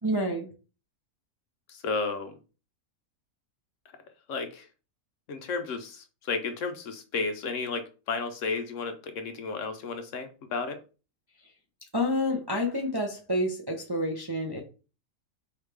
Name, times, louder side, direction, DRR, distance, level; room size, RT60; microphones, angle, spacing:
voice 1, 0.0-0.5 11.9-14.6, left 1 dB, 30° right, 0.4 m, -28 dB
voice 2, 1.7-2.4 4.3-4.7 5.3-10.8, left 4 dB, 65° left, 1.0 m, -33 dB
4.7 x 3.3 x 3.4 m
omnidirectional pair, 1.5 m